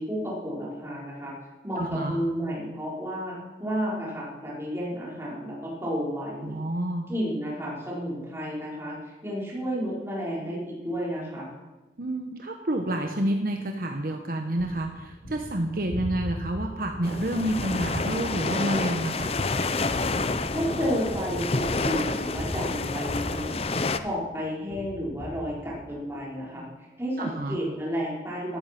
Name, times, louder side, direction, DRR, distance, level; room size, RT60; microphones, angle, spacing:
voice 1, 0.0-1.3 1.6-6.5 7.1-11.5 20.5-23.6 24.0-28.6, equal, 15° right, -5 dB, 4.8 m, -31 dB
voice 2, 1.8-2.2 6.4-7.1 12.0-19.3 27.2-27.6, right 1 dB, 55° right, 4 dB, 1.1 m, -29 dB
Gunshot gunfire, 14.6-24.3 24.7-26.1, equal, 90° left, 3.7 m, -38 dB
sound 1, 17.0-24.0, left 3 dB, 35° left, 0.7 m, -29 dB
13.0 x 13.0 x 6.0 m, 1.2 s
head